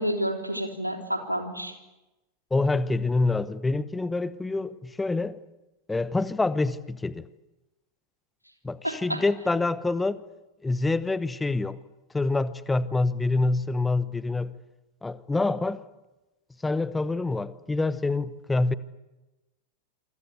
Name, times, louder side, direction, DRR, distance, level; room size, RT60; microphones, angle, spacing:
voice 1, 0.0-1.7 8.8-9.2, equal, 90° right, 3.7 m, -29 dB
voice 2, 2.5-5.4 5.9-7.3 8.6-10.2 10.6-11.8 12.1-14.6 15.0-15.8 16.6-18.7, left 3 dB, 10° left, 1.0 m, -26 dB
27.5 x 24.5 x 8.3 m
figure-of-eight pair, 90°, 0 cm